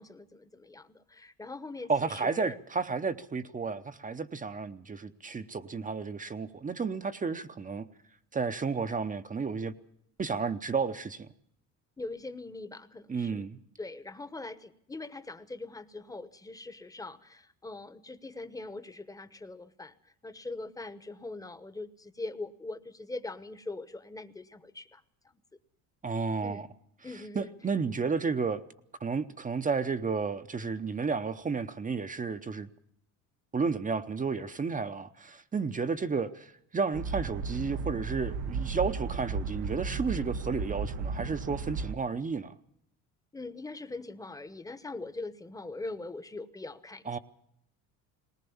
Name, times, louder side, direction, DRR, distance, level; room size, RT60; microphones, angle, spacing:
voice 1, 0.0-2.5 12.0-13.5 13.8-25.0 26.4-26.6 27.0-27.5 43.3-47.2, left 2 dB, 10° left, 1.0 m, -42 dB
voice 2, 1.9-7.9 8.3-9.7 10.2-11.3 13.1-13.6 26.0-26.7 27.3-28.6 29.0-32.7 33.5-42.5 47.1-47.2, right 5 dB, 20° right, 0.8 m, -32 dB
sound 1, 36.9-42.0, right 5 dB, 90° right, 1.1 m, -34 dB
19.5 x 19.0 x 7.1 m
cardioid pair, 105°, 37 cm